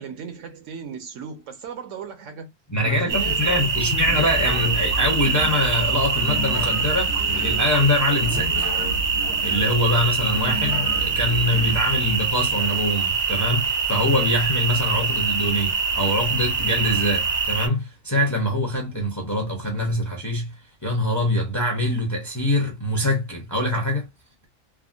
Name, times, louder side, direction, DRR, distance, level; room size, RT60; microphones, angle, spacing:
voice 1, 0.0-2.5 2.8-4.1 10.5-10.6, right 6 dB, 70° right, 1.0 m, -37 dB
voice 2, 2.7-8.8 9.4-20.5 20.8-24.1, left 1 dB, 20° left, 0.6 m, -24 dB
sound 1, 3.1-17.7, right 5 dB, 55° right, 0.5 m, -24 dB
sound 2, 4.0-5.6 6.1-7.7 8.2-9.8 10.3-11.9, equal, 60° left, 1.0 m, -32 dB
3.5 x 2.0 x 2.4 m
omnidirectional pair, 1.4 m